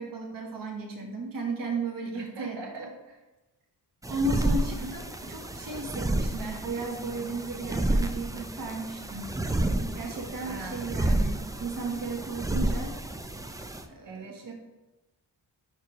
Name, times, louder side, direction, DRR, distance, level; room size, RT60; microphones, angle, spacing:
voice 1, 0.0-2.6 4.1-9.4 9.9-12.9 13.9-14.5, right 3 dB, 50° right, 1 dB, 0.9 m, -34 dB
voice 2, 2.1-3.2 10.4-10.8 14.0-14.5, right 4 dB, 85° right, 0 dB, 1.2 m, -41 dB
sound 1, 4.0-13.8, right 1 dB, 10° right, 0.3 m, -30 dB
5.0 x 4.5 x 4.5 m, 1.1 s
wide cardioid pair, 95°, 42 cm